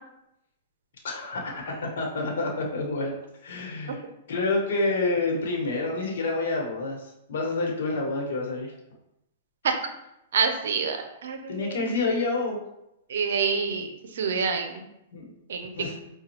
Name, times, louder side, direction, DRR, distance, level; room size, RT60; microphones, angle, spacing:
voice 1, 1.0-3.1 3.4-4.0 4.3-8.7 11.5-12.6 15.1-15.2 15.7-15.9, left 3 dB, 75° left, -1 dB, 1.1 m, -28 dB
voice 2, 10.3-12.0 13.1-14.8 15.5-15.7, right 5 dB, 75° right, 5 dB, 0.6 m, -27 dB
5.2 x 2.3 x 2.8 m, 0.85 s
hypercardioid pair, 145°, 0 cm